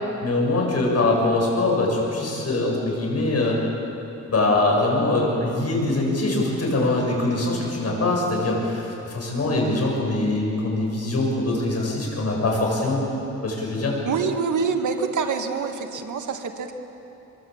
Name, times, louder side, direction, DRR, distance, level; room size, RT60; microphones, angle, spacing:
voice 1, 0.2-3.6 4.3-13.0 13.4-14.0, left 2 dB, 55° left, -1 dB, 7.9 m, -23 dB
voice 2, 14.0-16.7, right 5 dB, 80° right, 5 dB, 2.0 m, -26 dB
24.5 x 23.0 x 8.8 m, 2.9 s
wide cardioid pair, 100°, 30 cm